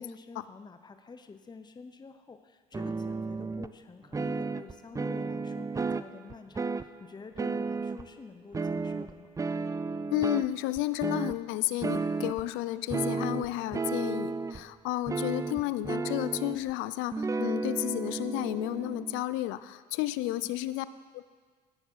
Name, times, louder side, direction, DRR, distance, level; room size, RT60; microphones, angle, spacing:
voice 1, 0.0-9.3 20.2-20.5, left 4 dB, 20° left, 8 dB, 0.8 m, -49 dB
sound 1, 2.7-3.7 4.1-6.9 7.4-8.1 8.5-10.5 10.8-11.3 11.8-12.5 12.9-14.6 15.1-16.7 17.1-19.2, right 4 dB, 15° right, 0.4 m, -33 dB
voice 2, 10.1-20.9 21.1-21.2, left 16 dB, 70° left, 15 dB, 0.5 m, -32 dB
16.5 x 7.0 x 5.6 m, 1.5 s
hypercardioid pair, 70°, 21 cm